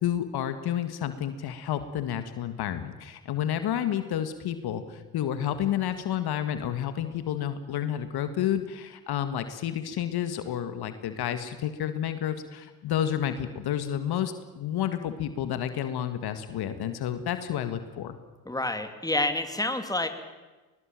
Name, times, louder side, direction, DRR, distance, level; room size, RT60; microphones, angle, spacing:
voice 1, 0.0-18.2, left 10 dB, 60° left, 10 dB, 1.8 m, -30 dB
voice 2, 18.5-20.1, left 2 dB, 10° left, 7 dB, 2.9 m, -28 dB
21.0 x 21.0 x 7.6 m, 1.2 s
hypercardioid pair, 65°, 42 cm